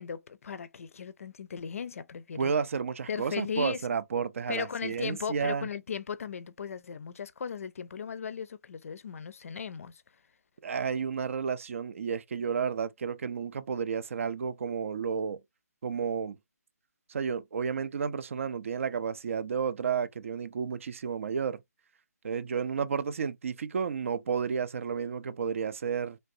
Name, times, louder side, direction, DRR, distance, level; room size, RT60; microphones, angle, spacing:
voice 1, 0.0-2.5 3.1-3.8 4.5-10.0, left 6 dB, 55° left, 0.4 m, -37 dB
voice 2, 2.3-5.7 10.6-15.4 15.8-16.4 17.1-21.6 22.2-26.2, right 6 dB, 50° right, 0.4 m, -31 dB
3.2 x 2.5 x 2.6 m
hypercardioid pair, 155°, 9 cm